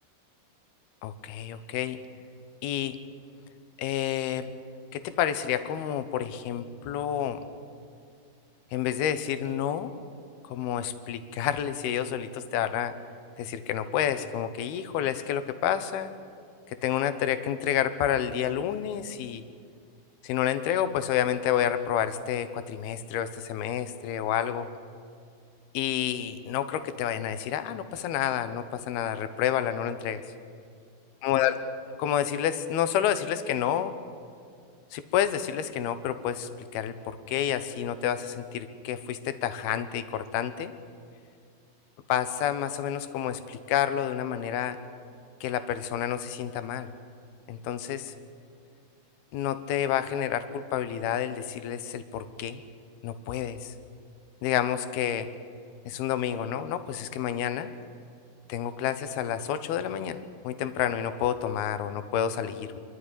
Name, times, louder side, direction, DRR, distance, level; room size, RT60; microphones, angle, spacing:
voice 1, 1.0-2.0 2.6-3.0 3.8-4.5 4.9-7.4 8.7-9.9 10.4-13.0 13.4-16.1 16.7-19.4 20.2-24.7 25.7-30.2 31.2-31.6 32.0-33.9 34.9-40.7 42.1-44.8 45.4-46.9 47.5-48.1 49.3-52.6 53.0-53.7 54.4-55.3 55.9-57.7 58.5-62.8, left 10 dB, 85° left, 11 dB, 2.9 m, -29 dB
25.5 x 12.0 x 9.9 m, 2.3 s
omnidirectional pair, 4.4 m